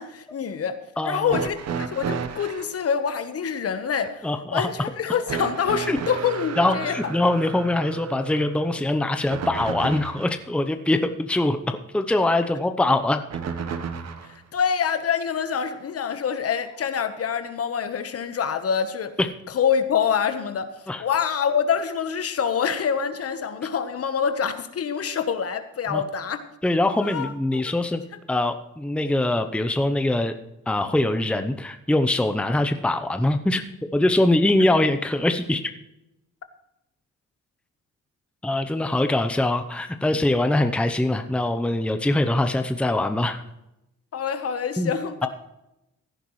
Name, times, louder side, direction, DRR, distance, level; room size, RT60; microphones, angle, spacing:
voice 1, 0.0-0.8 1.0-7.1 14.2-19.1 19.5-20.7 21.0-26.4 27.0-27.6 44.1-45.3, left 7 dB, 50° left, 10 dB, 1.3 m, -26 dB
voice 2, 1.0-1.4 4.2-4.7 5.9-6.0 6.6-13.2 19.2-19.3 20.9-21.0 25.9-26.0 26.6-28.0 28.3-30.3 30.7-33.6 33.9-35.7 38.4-43.4 44.8-44.9 45.2-45.3, left 1 dB, 5° left, 8 dB, 0.8 m, -23 dB
sound 1, 1.3-2.7 5.3-10.4 13.3-14.4 15.6-15.7 16.8-16.9, right 6 dB, 60° right, 1.2 m, -32 dB
16.5 x 10.0 x 3.2 m, 0.89 s
cardioid pair, 90°, 30 cm